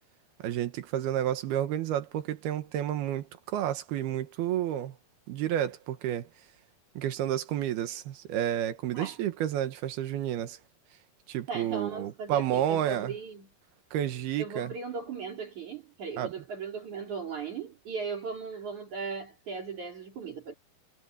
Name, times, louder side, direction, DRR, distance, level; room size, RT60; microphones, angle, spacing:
voice 1, 0.4-5.0 5.3-6.3 7.0-10.6 11.3-13.1 13.9-14.7 16.2-16.3, right 11 dB, 75° right, 3.2 m, -30 dB
voice 2, 11.5-13.5 14.4-20.5, right 5 dB, 45° right, 5.2 m, -37 dB
omnidirectional pair, 4.7 m